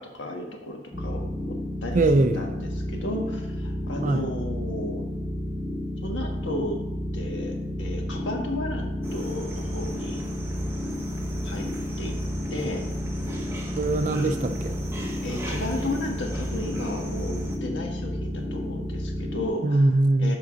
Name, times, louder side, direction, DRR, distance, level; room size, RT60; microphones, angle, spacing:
voice 1, 0.0-1.5 1.8-2.0 2.3-5.0 6.0-6.8 7.1-10.2 11.4-12.1 12.5-12.8 15.2-19.9 20.2-20.4, left 1 dB, 80° left, 1 dB, 1.4 m, -34 dB
sound 1, 0.9-19.5, left 1 dB, 15° left, 1.2 m, -31 dB
voice 2, 1.9-2.4 4.0-4.3 13.8-14.8 19.6-20.4, right 2 dB, 40° right, 10 dB, 0.4 m, -22 dB
sound 2, 9.0-17.6, right 1 dB, 15° right, 0.9 m, -38 dB
6.2 x 3.8 x 6.2 m, 0.94 s
head